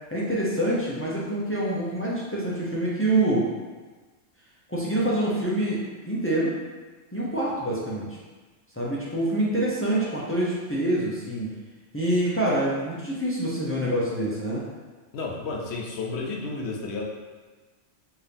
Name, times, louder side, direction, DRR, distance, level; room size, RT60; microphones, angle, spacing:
voice 1, 0.1-3.5 4.7-6.5 7.1-8.1 8.8-11.5 11.9-14.6, right 1 dB, 15° left, -6 dB, 0.4 m, -26 dB
voice 2, 15.1-17.1, left 3 dB, 65° left, -1 dB, 0.9 m, -32 dB
4.5 x 2.7 x 3.4 m, 1.3 s
omnidirectional pair, 1.3 m